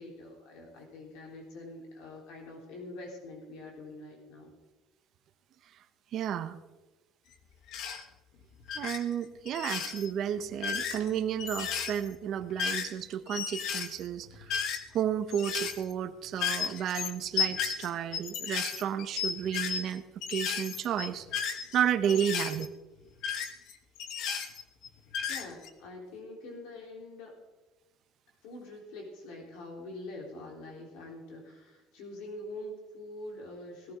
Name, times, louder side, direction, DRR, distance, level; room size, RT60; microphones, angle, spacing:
voice 1, 0.0-4.5 22.2-22.6 25.3-27.3 28.4-33.9, left 2 dB, 85° left, -1 dB, 3.8 m, -45 dB
voice 2, 6.1-6.6 8.8-14.5 14.9-20.0 20.3-22.7, right 9 dB, 50° right, 9 dB, 0.8 m, -32 dB
sound 1, 7.7-8.0 8.6-9.0 9.5-10.1 10.5-13.0 13.3-15.0 15.3-15.9 16.4-19.9 20.2-22.7 23.2-24.9 25.1-25.7, left 7 dB, 60° left, 1.4 m, -34 dB
17.5 x 14.5 x 3.8 m, 1.1 s
cardioid pair, 140°, 0 cm